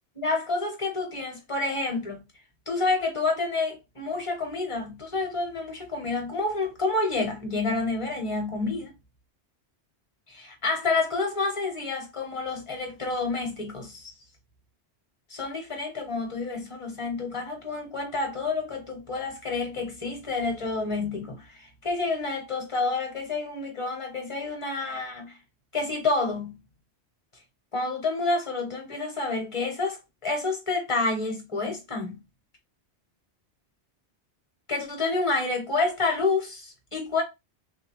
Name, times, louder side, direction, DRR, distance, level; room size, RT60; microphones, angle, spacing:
voice 1, 0.2-2.2 2.7-8.9 10.3-14.1 15.3-25.4 25.7-26.6 27.7-32.2 34.7-37.2, left 3 dB, 30° left, 0.8 m, -29 dB
3.2 x 2.4 x 3.0 m
omnidirectional pair, 1.2 m